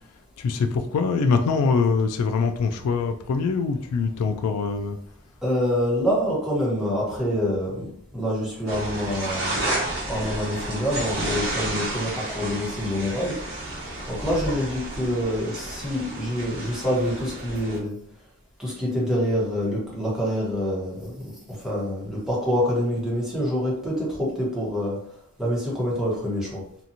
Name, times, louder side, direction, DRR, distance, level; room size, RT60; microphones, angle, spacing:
voice 1, 0.4-5.0, left 4 dB, 80° left, 0.3 m, -23 dB
voice 2, 5.4-13.4 14.1-17.9 18.6-25.1 25.4-26.6, equal, ahead, 1.1 m, -26 dB
sound 1, 8.7-17.8, right 1 dB, 45° right, 1.2 m, -31 dB
2.8 x 2.5 x 2.6 m
head